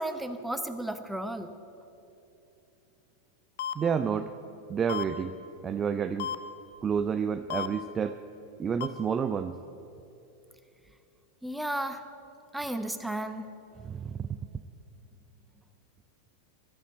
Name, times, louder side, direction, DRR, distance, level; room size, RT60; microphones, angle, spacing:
voice 1, 0.0-1.6 11.4-12.1 12.5-13.5, right 1 dB, 5° right, 9 dB, 0.9 m, -34 dB
sound 1, 3.6-3.7 4.9-5.0 6.2-6.3 7.5-7.7 8.8-8.9, left 9 dB, 55° left, 0.8 m, -32 dB
voice 2, 3.8-4.3 4.7-5.4 5.6-6.3 6.8-8.2 8.6-9.6 13.8-14.4, right 7 dB, 20° right, 11 dB, 0.4 m, -29 dB
12.5 x 11.0 x 7.7 m, 2.9 s
figure-of-eight pair, 90°, 0 cm